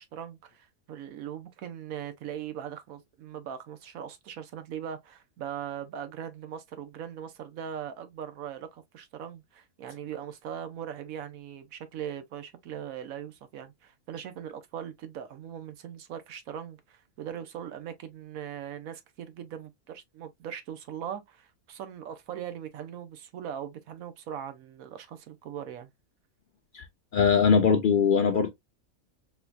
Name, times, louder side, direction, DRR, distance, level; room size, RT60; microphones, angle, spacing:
voice 1, 0.0-25.9, right 9 dB, 75° right, 1.2 m, -40 dB
voice 2, 27.1-28.5, left 6 dB, 80° left, 0.4 m, -21 dB
4.2 x 2.7 x 2.2 m
omnidirectional pair, 1.5 m